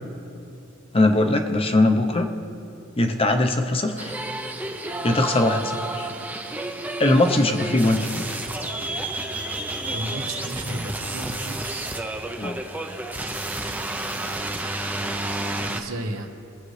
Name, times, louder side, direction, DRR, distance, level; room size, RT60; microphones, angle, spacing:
voice 1, 0.9-2.3 3.0-4.1 5.0-6.1 7.0-8.4 12.4-12.6, left 2 dB, 25° left, 5 dB, 0.8 m, -21 dB
sound 1, 4.0-15.8, right 2 dB, 10° right, 0.6 m, -30 dB
voice 2, 9.9-11.8 15.7-16.3, right 1 dB, 85° right, 4 dB, 1.1 m, -33 dB
21.5 x 8.0 x 3.3 m, 2.7 s
head